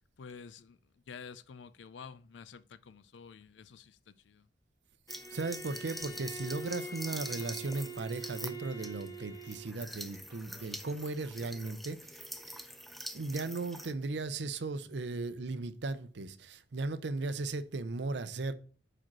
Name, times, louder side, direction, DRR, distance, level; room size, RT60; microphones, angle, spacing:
voice 1, 0.2-0.8 1.1-4.5, left 6 dB, 85° left, 0.4 m, -50 dB
Bowed string instrument, 5.1-9.9, right 2 dB, 15° left, 0.9 m, -45 dB
sound 1, 5.1-13.9, equal, ahead, 0.4 m, -45 dB
voice 2, 5.3-12.1 13.1-18.5, right 3 dB, 75° right, 0.6 m, -36 dB
4.9 x 4.4 x 6.0 m
head